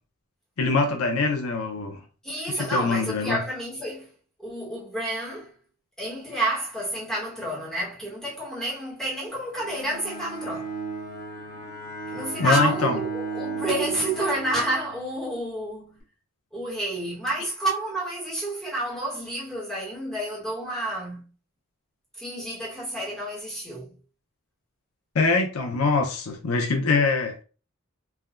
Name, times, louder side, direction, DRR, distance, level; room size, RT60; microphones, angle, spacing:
voice 1, 0.6-2.0 2.5-3.4 12.4-13.0 25.1-27.4, left 4 dB, 80° left, 0.5 m, -23 dB
voice 2, 2.2-4.1 4.4-5.6 6.0-10.7 12.1-16.0 16.5-21.3 22.2-24.0, right 1 dB, 5° left, 0.9 m, -29 dB
Bowed string instrument, 9.6-15.4, right 4 dB, 45° left, 1.0 m, -35 dB
3.4 x 2.1 x 2.3 m
head